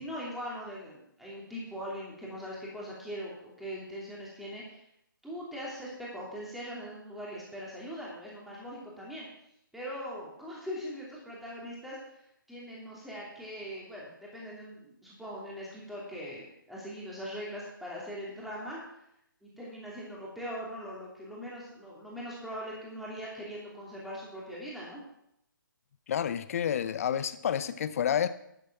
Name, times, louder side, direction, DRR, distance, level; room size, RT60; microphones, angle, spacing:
voice 1, 0.0-4.8 5.2-9.3 9.7-12.0 12.5-18.8 19.4-25.0, equal, ahead, -6 dB, 2.8 m, -41 dB
voice 2, 26.1-28.3, left 9 dB, 45° left, 14 dB, 0.8 m, -29 dB
12.0 x 8.0 x 5.9 m, 0.77 s
figure-of-eight pair, 145°, 11 cm